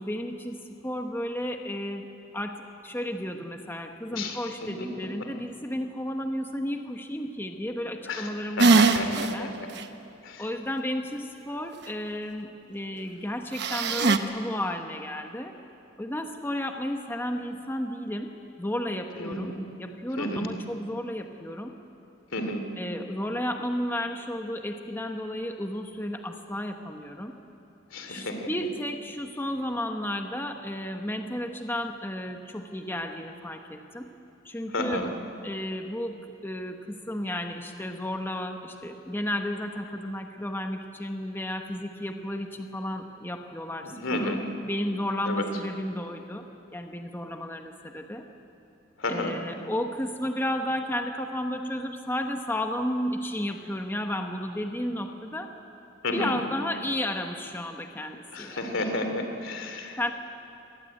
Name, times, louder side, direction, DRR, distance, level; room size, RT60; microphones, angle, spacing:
voice 1, 0.0-2.1 2.3-2.6 2.8-8.9 9.3-9.5 10.4-15.5 16.0-18.3 18.6-21.7 22.8-27.3 28.1-34.1 34.4-35.0 35.4-36.2 36.4-44.3 44.7-46.4 46.7-48.2 49.1-55.5 56.1-58.6 60.0-60.1, left 1 dB, 10° left, 4 dB, 1.1 m, -33 dB
voice 2, 4.1-5.1 8.1-9.1 9.4-9.5 10.2-10.4 19.2-19.6 20.2-20.5 22.3-22.7 27.9-28.4 34.7-35.1 43.8-44.4 45.2-45.4 49.0-49.3 56.0-56.3 58.3-60.1, left 1 dB, 80° left, 5 dB, 3.0 m, -32 dB
sound 1, 8.6-9.3 9.8-9.9 13.6-14.2, right 3 dB, 60° right, 1.1 m, -20 dB
24.5 x 20.0 x 9.0 m, 2.8 s
head